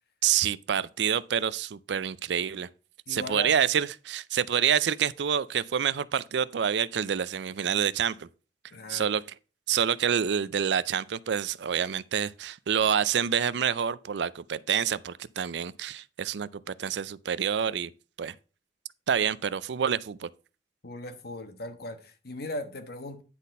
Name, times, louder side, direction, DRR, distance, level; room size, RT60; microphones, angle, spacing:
voice 1, 0.2-2.7 3.1-8.3 8.9-9.2 9.7-17.9 18.2-18.3 19.1-20.3, right 8 dB, 75° right, 0.4 m, -27 dB
voice 2, 3.1-3.5 8.7-9.2 20.8-23.2, left 1 dB, 60° left, 1.3 m, -38 dB
10.0 x 4.2 x 5.3 m
head